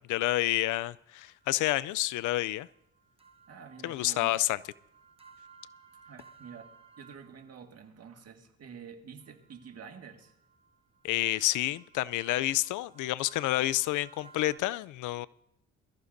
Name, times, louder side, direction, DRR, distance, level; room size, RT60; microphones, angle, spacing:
voice 1, 0.0-2.7 3.8-4.6 11.0-15.3, left 16 dB, 80° left, 0.5 m, -29 dB
sound 1, 1.2-7.6 9.2-14.6, right 5 dB, 20° right, 1.0 m, -58 dB
voice 2, 3.5-4.4 6.1-6.7 7.0-10.3, right 6 dB, 55° right, 1.8 m, -48 dB
22.0 x 14.0 x 2.6 m
cardioid pair, 90°, 30 cm